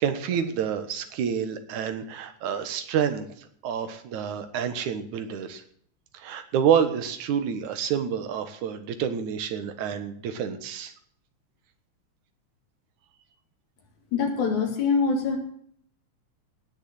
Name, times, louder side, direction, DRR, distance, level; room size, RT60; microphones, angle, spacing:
voice 1, 0.0-5.6 6.1-10.9, right 8 dB, 85° right, 10 dB, 2.8 m, -28 dB
voice 2, 14.1-15.4, left 5 dB, 80° left, 2 dB, 4.3 m, -24 dB
18.5 x 6.9 x 7.7 m, 0.64 s
omnidirectional pair, 3.3 m